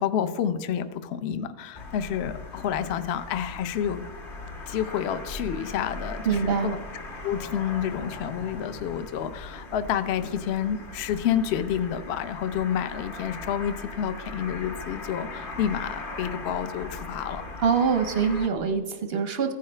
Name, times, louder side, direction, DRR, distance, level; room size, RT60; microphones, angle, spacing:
voice 1, 0.0-4.1 4.7-6.8 7.2-17.4, left 9 dB, 65° left, 11 dB, 0.6 m, -29 dB
sound 1, 1.7-18.5, left 2 dB, 40° left, 1.1 m, -39 dB
voice 2, 6.2-6.8 17.6-19.5, right 6 dB, 55° right, 7 dB, 0.7 m, -24 dB
15.5 x 9.4 x 3.3 m, 1.4 s
omnidirectional pair, 1.7 m